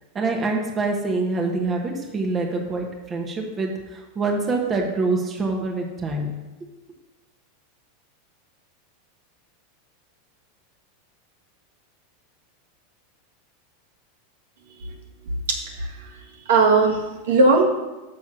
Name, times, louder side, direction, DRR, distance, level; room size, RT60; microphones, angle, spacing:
voice 1, 0.1-6.4, right 3 dB, 20° right, 1 dB, 1.1 m, -25 dB
voice 2, 15.5-16.1 16.5-17.6, right 3 dB, 85° right, 0 dB, 1.7 m, -19 dB
6.2 x 6.0 x 6.1 m, 1.1 s
supercardioid pair, 150°, 0 cm